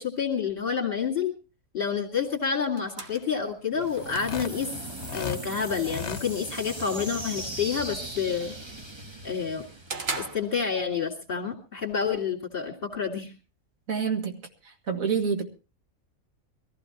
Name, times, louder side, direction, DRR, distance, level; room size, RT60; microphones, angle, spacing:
voice 1, 0.0-1.3 1.7-4.7 5.1-8.5 9.2-9.6 10.2-13.3, left 6 dB, 40° left, 2.6 m, -29 dB
sound 1, 2.1-11.1, right 4 dB, 50° right, 1.6 m, -43 dB
sound 2, 3.7-10.6, right 1 dB, 20° right, 1.3 m, -39 dB
sound 3, 4.0-5.4 5.8-6.2, left 7 dB, 55° left, 1.1 m, -35 dB
voice 2, 13.9-14.4 14.9-15.5, right 6 dB, 75° right, 2.2 m, -27 dB
22.5 x 15.0 x 3.0 m
omnidirectional pair, 1.4 m